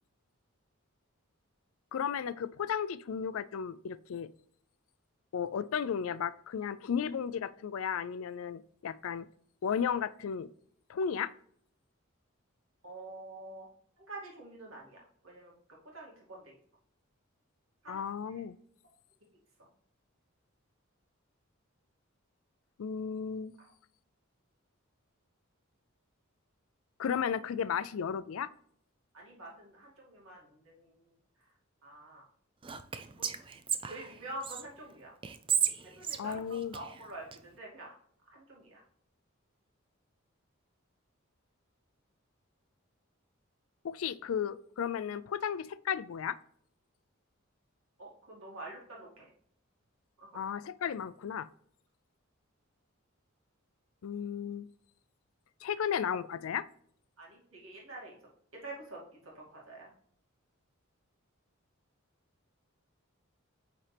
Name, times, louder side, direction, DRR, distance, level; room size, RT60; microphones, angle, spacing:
voice 1, 1.9-4.3 5.3-9.3 9.6-10.5 10.9-11.3 17.9-18.6 22.8-23.5 27.0-28.5 36.2-36.7 43.8-46.4 50.3-51.5 54.0-54.7 55.6-56.7, left 7 dB, 75° left, 16 dB, 0.4 m, -34 dB
voice 2, 12.8-13.7 14.0-16.5 17.8-18.4 29.1-31.1 31.4-31.5 31.8-32.2 33.2-33.3 33.8-35.1 35.8-36.4 36.7-37.9 38.3-38.8 48.0-49.3 50.2-50.5 57.2-58.2 58.5-59.9, right 2 dB, 70° right, -3 dB, 2.5 m, -47 dB
Whispering, 32.6-34.6 35.2-37.4, right 8 dB, 25° right, 0.4 m, -34 dB
8.7 x 4.3 x 3.4 m, 0.65 s
head